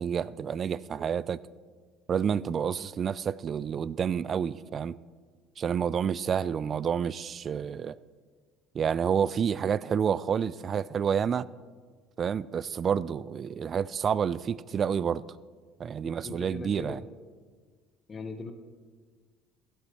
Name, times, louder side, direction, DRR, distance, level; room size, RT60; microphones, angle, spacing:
voice 1, 0.0-1.4 2.1-5.0 5.6-8.0 8.7-11.5 12.2-15.2 15.8-17.0, right 7 dB, 40° right, 0.4 m, -29 dB
voice 2, 16.0-17.0 18.1-18.5, left 4 dB, 35° left, 1.0 m, -40 dB
15.5 x 11.5 x 3.1 m
hypercardioid pair, 65°, 0 cm